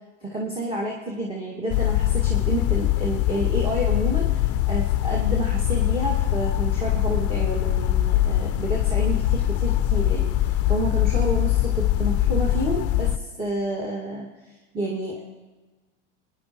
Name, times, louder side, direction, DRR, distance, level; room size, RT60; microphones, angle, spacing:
voice 1, 0.2-14.3 14.7-15.2, right 1 dB, 15° right, -3 dB, 2.2 m, -29 dB
sound 1, 1.7-13.2, left 13 dB, 40° left, 0.5 m, -22 dB
26.0 x 11.0 x 3.2 m, 1.2 s
hypercardioid pair, 100°, 38 cm